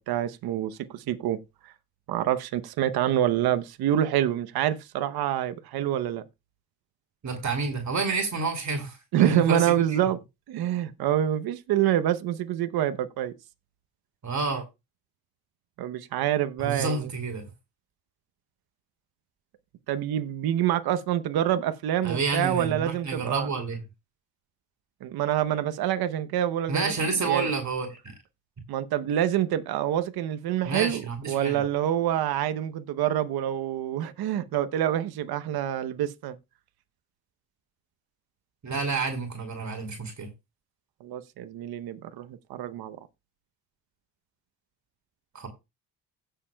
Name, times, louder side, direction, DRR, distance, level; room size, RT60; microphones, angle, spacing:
voice 1, 0.0-1.4 1.6-1.7 2.1-6.2 9.1-10.2 10.5-13.3 15.8-17.1 19.9-23.5 25.0-27.5 28.7-36.4 41.0-43.0, right 11 dB, 70° right, 0.8 m, -26 dB
voice 2, 7.2-9.7 14.2-14.6 16.6-17.5 22.0-23.8 26.7-28.1 30.6-31.6 38.6-40.3 45.3-45.5, right 4 dB, 45° right, 2.4 m, -29 dB
16.5 x 6.7 x 2.2 m
supercardioid pair, 65°, 38 cm